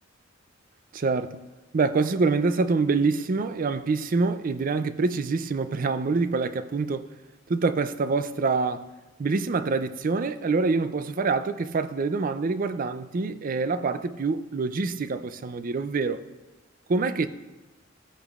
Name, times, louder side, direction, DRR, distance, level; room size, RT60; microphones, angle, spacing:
voice 1, 0.9-1.4 1.7-7.0 7.5-8.9 9.2-16.2 16.9-17.3, right 4 dB, 45° right, 0.5 m, -26 dB
17.0 x 8.3 x 2.4 m
head